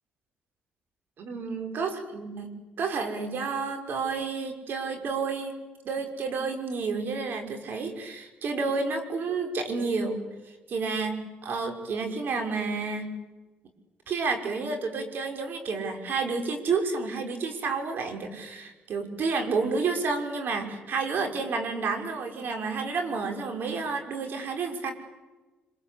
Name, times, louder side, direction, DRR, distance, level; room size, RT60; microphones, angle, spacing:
voice 1, 1.2-2.5 2.8-5.6 5.8-10.2 10.7-13.1 14.1-24.9, right 4 dB, 60° right, 5 dB, 5.9 m, -30 dB
26.0 x 25.5 x 8.6 m, 1.2 s
supercardioid pair, 75°, 4 cm